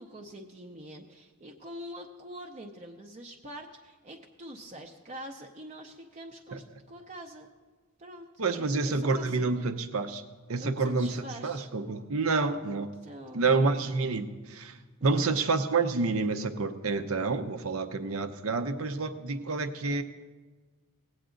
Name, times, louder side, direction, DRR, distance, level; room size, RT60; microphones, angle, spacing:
voice 1, 0.0-7.5 8.0-8.3 8.5-9.5 10.6-11.7 12.4-12.5 12.7-13.5 15.0-15.4, equal, 35° right, 2 dB, 0.6 m, -45 dB
voice 2, 8.4-10.2 10.5-12.9 13.3-14.8 15.0-20.0, right 3 dB, 70° right, 9 dB, 0.7 m, -28 dB
18.5 x 8.0 x 3.8 m, 1.3 s
head